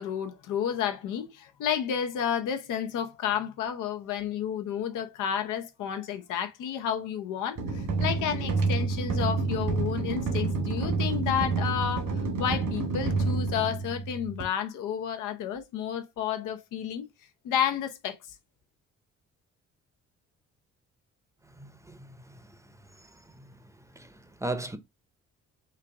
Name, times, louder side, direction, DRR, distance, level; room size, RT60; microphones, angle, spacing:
voice 1, 0.0-12.0 12.4-17.1 17.4-18.2, left 9 dB, 90° left, 0.8 m, -31 dB
sound 1, 7.6-14.4, right 3 dB, 75° right, 1.8 m, -28 dB
voice 2, 21.6-22.4 23.3-23.6 23.9-24.8, right 2 dB, 10° right, 0.7 m, -37 dB
4.4 x 2.5 x 3.4 m
cardioid pair, 90°, 30 cm